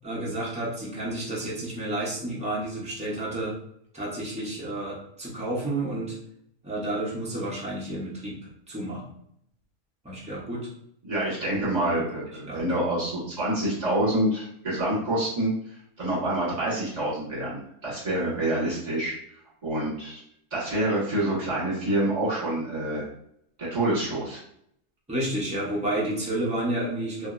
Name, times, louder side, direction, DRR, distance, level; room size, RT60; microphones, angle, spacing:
voice 1, 0.0-3.5 3.9-6.2 6.6-9.0 10.0-10.7 12.4-12.6 25.1-27.3, right 1 dB, 10° right, -5 dB, 0.3 m, -30 dB
voice 2, 11.0-15.5 16.0-19.1 19.6-20.2 20.5-23.1 23.6-24.4, right 1 dB, 30° right, -8 dB, 1.5 m, -27 dB
2.8 x 2.6 x 2.4 m, 0.70 s
omnidirectional pair, 1.5 m